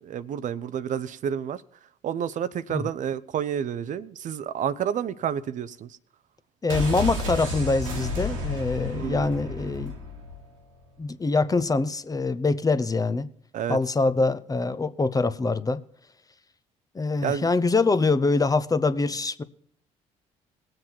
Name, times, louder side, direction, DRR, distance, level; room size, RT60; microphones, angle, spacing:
voice 1, 0.0-1.6 2.0-5.9 8.9-9.3 13.5-13.8 17.2-17.5, right 9 dB, 50° right, 0.6 m, -29 dB
voice 2, 6.6-9.9 11.0-13.3 13.7-15.8 16.9-19.4, left 3 dB, 20° left, 0.8 m, -24 dB
sound 1, 6.7-10.5 10.7-10.8, left 1 dB, 90° right, 1.8 m, -31 dB
20.0 x 7.7 x 4.5 m
hypercardioid pair, 55°, 16 cm